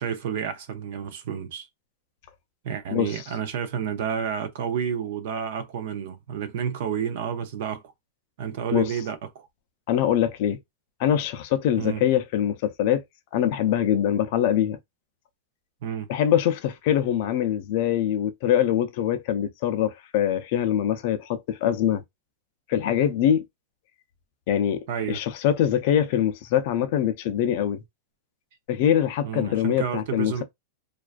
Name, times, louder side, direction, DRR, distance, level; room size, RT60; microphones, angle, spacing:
voice 1, 0.0-1.7 2.6-7.8 8.4-9.5 11.8-12.0 15.8-16.1 24.9-25.2 29.2-30.4, right 8 dB, 55° right, 0.4 m, -30 dB
voice 2, 2.9-3.2 8.7-8.9 9.9-10.6 11.0-13.0 13.3-14.8 16.1-22.0 22.7-23.4 24.5-27.8 28.7-30.4, left 10 dB, 45° left, 0.3 m, -23 dB
2.3 x 2.3 x 2.3 m
supercardioid pair, 175°, 0 cm